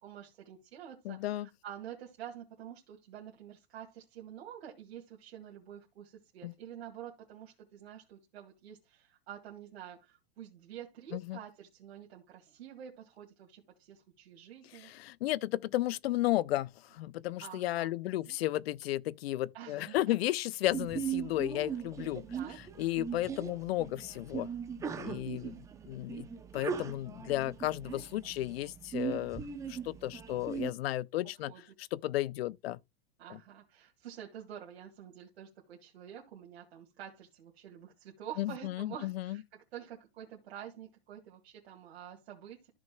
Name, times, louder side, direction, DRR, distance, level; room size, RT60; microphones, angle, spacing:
voice 1, 0.0-14.9 17.4-18.4 19.5-20.1 22.3-22.6 25.0-25.6 31.5-31.6 33.2-42.7, right 10 dB, 70° right, 2.2 m, -48 dB
voice 2, 1.0-1.5 6.4-6.5 11.1-11.4 14.8-22.2 22.8-24.5 24.8-25.6 25.9-26.3 26.5-31.5 31.9-32.8 33.3-33.4 38.4-39.4, left 15 dB, 65° left, 0.5 m, -33 dB
Sneeze, 20.7-30.7, right 7 dB, 10° right, 0.5 m, -39 dB
14.0 x 6.0 x 2.2 m
supercardioid pair, 150°, 33 cm